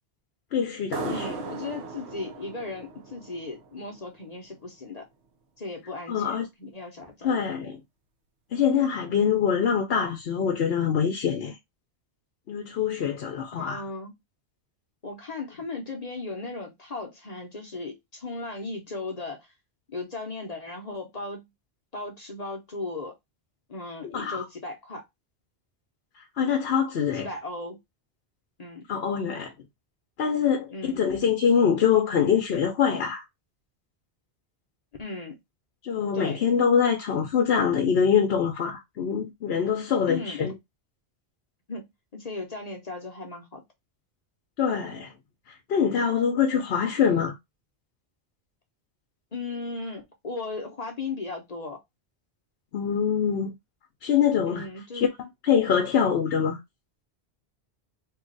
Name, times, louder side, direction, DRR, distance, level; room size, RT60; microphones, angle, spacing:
voice 1, 0.5-1.3 6.1-6.5 7.2-7.8 8.5-11.6 12.5-13.8 24.1-24.4 26.4-27.3 28.9-29.5 30.2-33.2 35.8-40.5 44.6-45.1 45.7-47.3 52.7-53.5 54.0-54.7 54.9-55.1 55.4-56.6, left 7 dB, 70° left, 0.9 m, -24 dB
sound 1, 0.9-4.2, right 4 dB, 80° right, 0.9 m, -38 dB
voice 2, 1.1-5.1 5.6-7.5 13.5-14.1 15.0-19.5 19.9-21.4 21.9-23.1 23.7-25.0 27.1-27.8 28.6-28.8 30.7-31.0 35.0-35.4 36.1-36.4 40.1-40.4 41.7-43.6 49.3-51.8 54.4-55.1, left 3 dB, 40° left, 0.8 m, -36 dB
2.8 x 2.4 x 3.8 m
omnidirectional pair, 1.1 m